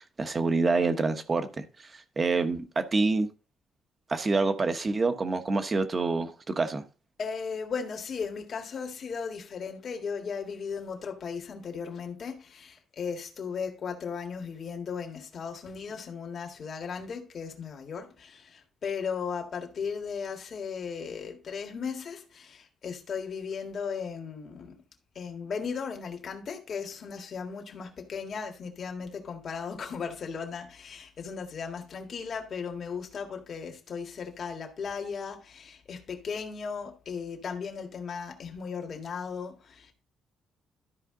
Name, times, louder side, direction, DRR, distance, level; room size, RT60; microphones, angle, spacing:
voice 1, 0.2-1.6 1.9-3.3 4.1-6.8, right 3 dB, 30° right, 1.1 m, -27 dB
voice 2, 7.2-24.8 25.2-39.9, left 6 dB, 50° left, 1.8 m, -36 dB
13.0 x 5.0 x 3.8 m
cardioid pair, 130°, 0 cm